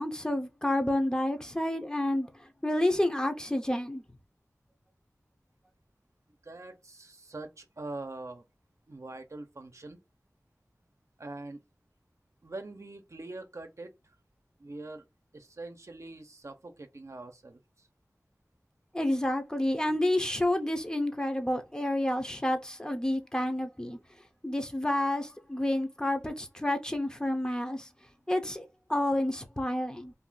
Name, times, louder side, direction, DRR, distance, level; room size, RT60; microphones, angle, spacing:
voice 1, 0.0-4.0 18.9-24.0 24.4-27.9 28.3-30.1, left 1 dB, 15° left, 0.7 m, -29 dB
voice 2, 6.4-8.4 8.9-10.0 11.2-11.6 12.4-14.1 14.6-15.0 15.3-17.9, right 2 dB, 60° right, 0.7 m, -43 dB
2.7 x 2.5 x 3.8 m
wide cardioid pair, 40°, 6 cm